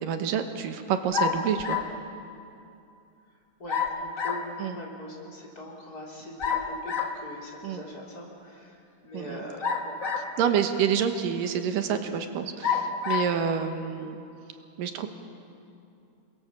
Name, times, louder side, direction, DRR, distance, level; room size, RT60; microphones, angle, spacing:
voice 1, 0.0-1.8 4.6-4.8 7.6-7.8 9.1-9.4 10.4-14.2 14.8-15.1, right 7 dB, 85° right, 7 dB, 2.9 m, -28 dB
sound 1, 1.1-2.0 3.7-4.5 6.4-7.2 9.6-10.5 11.2-11.3 12.6-13.3, left 6 dB, 65° left, 0.8 m, -28 dB
voice 2, 3.6-9.9, left 1 dB, 25° left, -1 dB, 4.2 m, -42 dB
28.5 x 23.0 x 7.4 m, 2.6 s
omnidirectional pair, 3.8 m